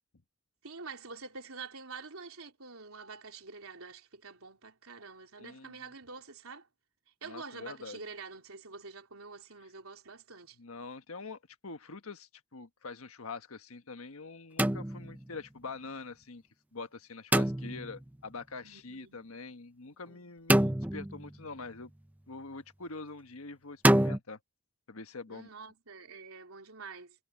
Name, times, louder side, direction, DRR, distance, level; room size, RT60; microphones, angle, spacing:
voice 1, 0.6-6.7 7.2-10.6 18.6-19.2 25.3-27.2, right 4 dB, 80° right, 3.5 m, -47 dB
voice 2, 5.4-5.8 7.3-8.0 10.6-16.4 16.7-21.9 22.3-24.4 24.9-25.5, left 3 dB, 80° left, 1.4 m, -44 dB
sound 1, 14.6-15.3 17.3-18.0 20.5-21.4 23.8-24.2, right 1 dB, 5° right, 0.6 m, -26 dB
head